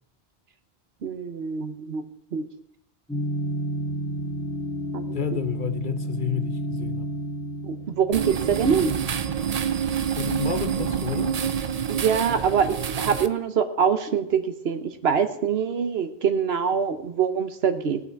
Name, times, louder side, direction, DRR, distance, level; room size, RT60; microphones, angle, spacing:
voice 1, 1.0-2.5 4.9-5.1 7.6-8.9 11.9-18.0, right 7 dB, 70° right, 9 dB, 1.2 m, -24 dB
sound 1, 3.1-9.9, right 1 dB, 5° left, 1.7 m, -32 dB
voice 2, 5.1-7.1 10.1-11.4, left 10 dB, 55° left, 9 dB, 0.8 m, -31 dB
sound 2, 8.1-13.3, right 8 dB, 45° right, 0.6 m, -27 dB
18.0 x 8.3 x 4.7 m, 0.75 s
omnidirectional pair, 1.1 m